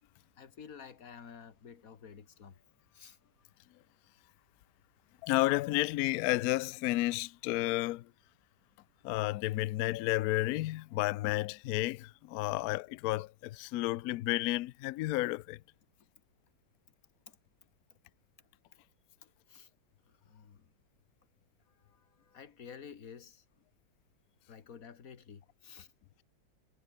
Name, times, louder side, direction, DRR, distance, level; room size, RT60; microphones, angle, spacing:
voice 1, 0.4-2.6 2.9-3.2 19.2-19.7 20.3-20.7 21.9-23.4 24.5-25.9, left 7 dB, 45° left, 2.1 m, -51 dB
voice 2, 5.2-8.0 9.0-15.6, left 18 dB, 80° left, 0.8 m, -31 dB
omnidirectional pair, 2.1 m